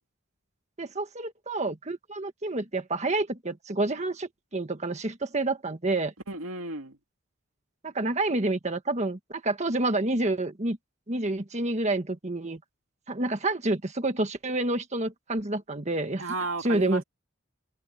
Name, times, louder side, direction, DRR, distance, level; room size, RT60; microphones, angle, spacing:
voice 1, 0.8-6.1 7.8-10.8 11.1-12.6 13.1-16.2 16.6-17.0, right 2 dB, 35° right, 1.5 m, -28 dB
voice 2, 6.3-7.0 16.2-17.0, right 2 dB, 90° right, 2.3 m, -33 dB
head